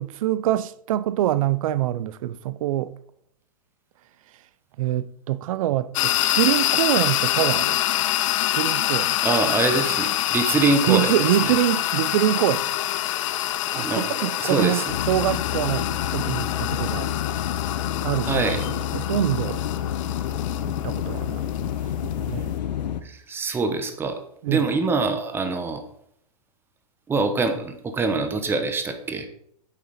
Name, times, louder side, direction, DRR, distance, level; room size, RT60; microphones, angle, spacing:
voice 1, 0.0-2.9 4.8-7.8 8.4-9.2 10.9-12.8 13.7-17.1 18.0-19.6 20.6-21.7 22.0-22.5 24.4-24.7, right 13 dB, 55° right, 0.5 m, -25 dB
sound 1, 5.9-22.6, left 14 dB, 50° left, 0.5 m, -26 dB
voice 2, 9.2-11.1 11.4-11.5 13.7-15.0 18.2-18.6 23.0-24.2 24.5-25.8 27.1-29.3, right 3 dB, 10° right, 1.0 m, -24 dB
sound 2, 14.9-23.0, left 10 dB, 85° left, 0.8 m, -29 dB
8.4 x 7.4 x 4.1 m
hypercardioid pair, 145°, 21 cm